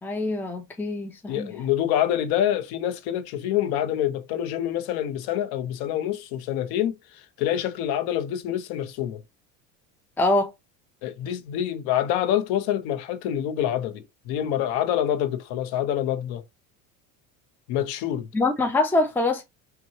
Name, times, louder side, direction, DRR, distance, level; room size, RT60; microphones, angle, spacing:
voice 1, 0.0-1.5 10.2-10.5 18.3-19.4, left 2 dB, 5° left, 0.6 m, -24 dB
voice 2, 1.3-9.2 11.0-16.4 17.7-18.3, left 11 dB, 70° left, 1.1 m, -26 dB
5.8 x 2.6 x 2.8 m
cardioid pair, 125°, 39 cm